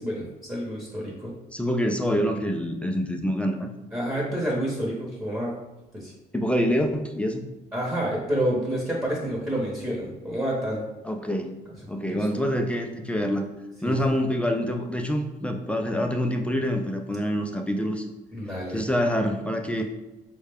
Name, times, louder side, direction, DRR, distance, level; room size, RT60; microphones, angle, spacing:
voice 1, 0.0-1.3 2.1-2.2 3.9-5.5 5.9-6.1 7.7-10.8 12.0-12.2 13.8-14.2 18.3-18.8, right 1 dB, 15° right, -4 dB, 0.9 m, -29 dB
voice 2, 1.5-3.7 6.3-7.5 11.0-11.6 11.9-13.4 13.8-18.1 18.7-19.8, equal, 5° left, 4 dB, 0.3 m, -26 dB
4.6 x 2.2 x 3.4 m, 1.0 s
cardioid pair, 110°, 17 cm